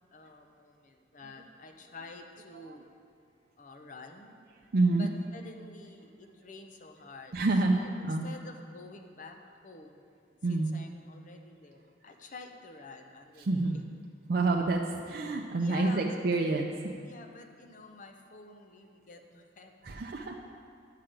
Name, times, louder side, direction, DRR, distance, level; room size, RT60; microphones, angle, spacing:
voice 1, 0.1-2.9 3.6-4.3 5.0-7.4 7.7-10.0 10.5-13.8 15.6-16.2 17.0-19.7, left 3 dB, 45° left, 5 dB, 0.7 m, -49 dB
voice 2, 4.7-5.1 7.3-7.8 8.0-8.3 10.4-10.7 13.4-13.8 14.3-16.7 19.8-20.3, right 3 dB, 55° right, 1 dB, 0.5 m, -27 dB
10.0 x 5.7 x 5.1 m, 2.2 s
head